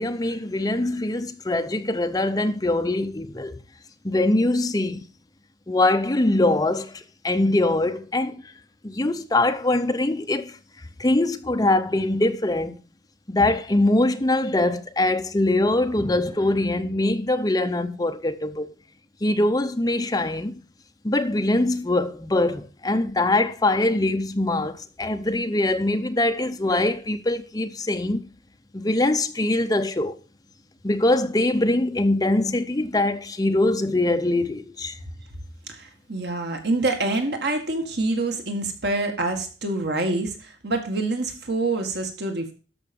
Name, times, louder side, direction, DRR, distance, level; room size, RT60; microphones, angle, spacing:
voice 1, 0.0-3.5 4.0-5.1 5.7-8.4 8.8-10.6 11.0-12.8 13.3-18.7 19.2-20.5 21.0-28.2 28.7-30.2 30.8-35.0, left 2 dB, 20° left, 0.8 m, -23 dB
voice 2, 35.7-42.5, right 2 dB, 65° right, 1.9 m, -26 dB
13.0 x 6.0 x 5.3 m
head